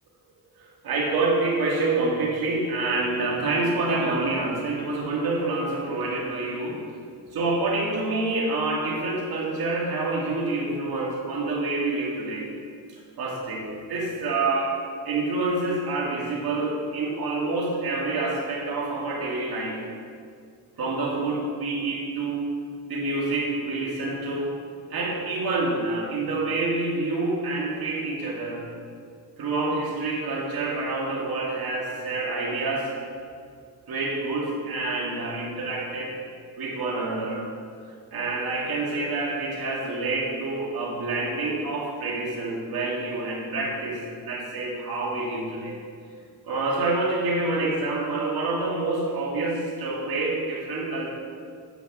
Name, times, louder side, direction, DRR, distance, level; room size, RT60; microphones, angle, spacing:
voice 1, 0.6-6.8 7.3-12.5 13.2-14.8 15.1-19.9 20.8-22.5 22.9-24.6 24.9-28.6 29.4-32.9 33.9-36.2 36.6-37.5 38.1-45.8 46.4-51.1, right 2 dB, 55° right, -3 dB, 2.0 m, -27 dB
8.6 x 6.3 x 4.7 m, 2.2 s
cardioid pair, 95°, 43 cm